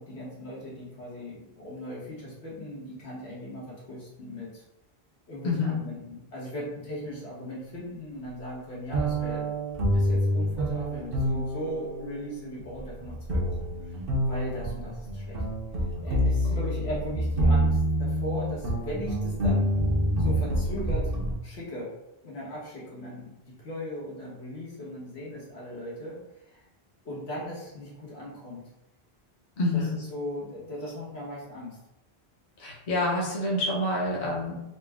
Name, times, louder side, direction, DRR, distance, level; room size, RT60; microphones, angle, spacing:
voice 1, 0.0-4.6 5.3-9.5 9.9-14.0 14.3-15.4 16.0-19.7 20.2-21.2 21.4-21.9 22.2-26.6 27.0-28.7 29.7-31.8, equal, 85° left, -6 dB, 1.5 m, -38 dB
voice 2, 5.4-5.8 16.8-16.9 29.6-29.9 32.6-34.6, left 2 dB, 50° left, -4 dB, 0.9 m, -27 dB
sound 1, 8.9-21.3, equal, 65° right, 1.0 m, -27 dB
4.1 x 2.1 x 3.5 m, 0.92 s
omnidirectional pair, 1.1 m